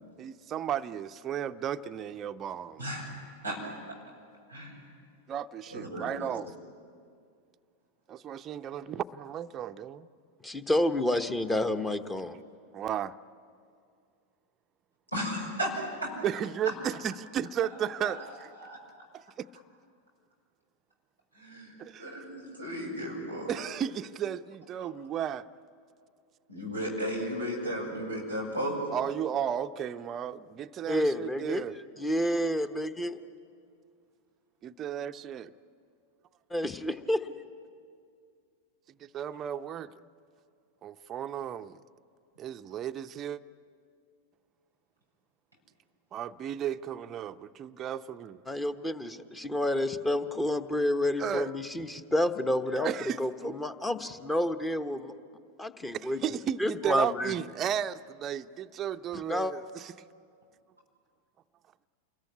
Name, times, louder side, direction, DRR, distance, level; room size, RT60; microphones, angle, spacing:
voice 1, 0.2-2.9 5.3-6.5 8.1-10.1 12.7-13.1 16.2-18.5 19.1-19.5 21.8-22.0 23.5-25.4 28.9-31.7 34.6-35.5 39.0-39.9 40.8-41.8 42.4-43.4 46.1-48.4 51.2-51.5 52.8-53.2 55.9-59.9, right 9 dB, 30° right, 9 dB, 0.6 m, -34 dB
voice 2, 4.5-4.8 5.7-6.1 15.1-16.1 18.0-18.2 18.6-18.8 21.3-21.7 22.0-23.5 26.5-28.8, equal, 90° left, -2 dB, 6.1 m, -34 dB
voice 3, 10.4-12.4 30.9-31.6 32.0-33.2 36.5-37.3 48.5-52.9 53.2-55.1 55.6-56.2 56.6-57.3 59.1-59.5, left 1 dB, 10° left, 11 dB, 1.1 m, -29 dB
28.5 x 21.5 x 9.7 m, 2.3 s
figure-of-eight pair, 90°, 0 cm